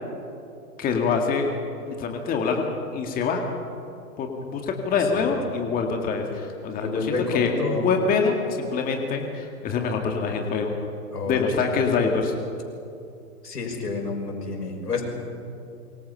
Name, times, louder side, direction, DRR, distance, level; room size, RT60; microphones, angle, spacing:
voice 1, 0.8-1.5 1.9-2.6 2.9-3.4 4.2-10.8 11.3-12.3, left 5 dB, 20° left, 3 dB, 2.0 m, -25 dB
voice 2, 6.8-7.9 11.1-11.8 13.4-15.0, left 3 dB, 90° left, 2 dB, 6.4 m, -29 dB
27.0 x 24.0 x 5.7 m, 2.6 s
hypercardioid pair, 135°, 46 cm